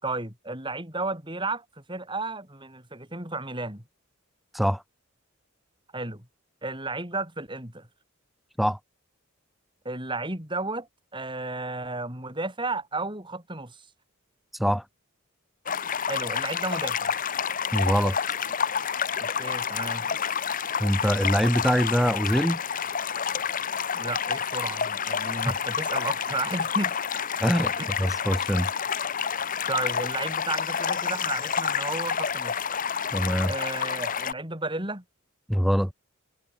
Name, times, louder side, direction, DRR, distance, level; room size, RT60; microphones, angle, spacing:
voice 1, 0.0-3.8 5.9-6.3 6.6-7.9 9.8-13.9 16.1-17.1 19.2-20.1 23.9-26.9 27.8-27.9 29.7-32.6 33.5-35.0, right 2 dB, 20° right, 6.7 m, -33 dB
voice 2, 14.5-14.8 17.7-18.2 20.8-22.6 27.4-27.7 28.0-28.7 33.1-33.5 35.5-35.9, equal, ahead, 0.8 m, -23 dB
sound 1, 15.7-34.3, left 7 dB, 35° left, 0.9 m, -29 dB
head